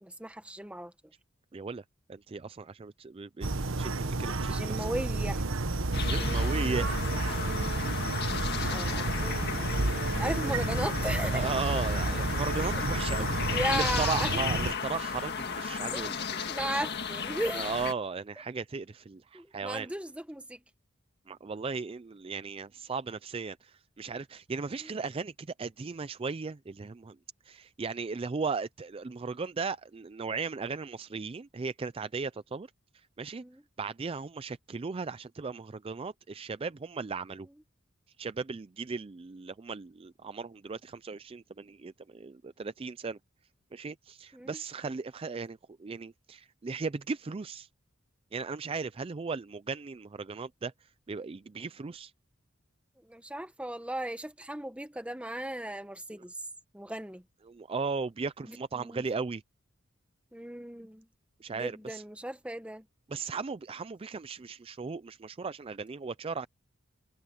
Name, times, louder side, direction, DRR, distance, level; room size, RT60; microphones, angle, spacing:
voice 1, 0.0-0.9 4.5-5.4 6.2-6.5 8.6-11.5 13.5-14.4 15.9-16.1 16.5-17.7 19.3-20.6 33.3-33.6 44.3-44.5 53.1-56.3 56.7-57.2 58.4-59.0 60.3-61.1 61.5-62.8, right 1 dB, 5° right, 1.4 m, -36 dB
voice 2, 1.5-4.9 6.0-6.9 10.3-10.4 11.2-16.5 17.5-19.9 21.3-27.2 27.4-32.7 32.9-33.4 33.8-37.5 38.2-43.2 43.7-47.7 48.3-52.1 57.4-59.4 61.4-62.0 63.1-66.5, right 4 dB, 30° right, 0.4 m, -37 dB
sound 1, 3.4-14.7, right 2 dB, 80° right, 1.3 m, -31 dB
sound 2, 5.9-17.9, left 6 dB, 55° left, 1.8 m, -34 dB
head